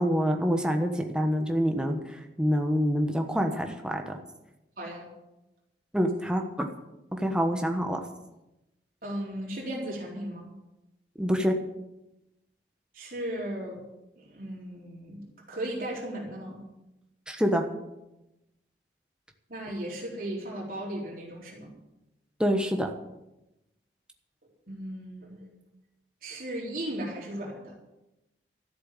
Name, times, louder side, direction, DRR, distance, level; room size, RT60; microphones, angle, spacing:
voice 1, 0.0-2.0 2.4-4.1 5.9-6.7 7.2-8.0 11.2-11.5 17.3-17.6 22.4-22.9, equal, 5° right, 4 dB, 1.1 m, -26 dB
voice 2, 4.8-5.1 9.0-10.5 12.9-13.8 14.2-16.6 19.5-21.7 24.7-25.5 26.2-27.7, right 1 dB, 50° right, -3 dB, 3.9 m, -36 dB
13.5 x 7.8 x 9.0 m, 0.94 s
head